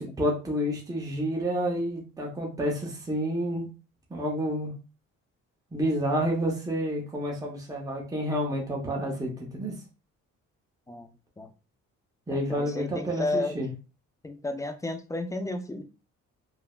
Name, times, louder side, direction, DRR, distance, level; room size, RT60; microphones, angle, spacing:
voice 1, 0.0-3.7 4.1-4.7 5.7-9.7 12.3-13.7, equal, 10° right, 0.8 m, -29 dB
voice 2, 12.3-13.6 14.2-15.8, left 2 dB, 10° left, 0.3 m, -32 dB
3.3 x 2.0 x 2.3 m
cardioid pair, 90°, 30 cm